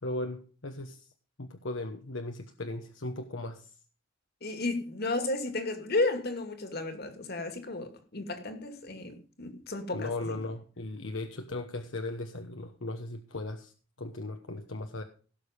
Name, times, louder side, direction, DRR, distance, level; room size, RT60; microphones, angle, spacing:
voice 1, 0.0-1.1 1.4-3.7 9.9-13.7 14.0-15.0, left 2 dB, 75° left, 1.1 m, -37 dB
voice 2, 4.4-10.4, left 2 dB, 55° left, 2.4 m, -33 dB
17.0 x 6.8 x 5.2 m
head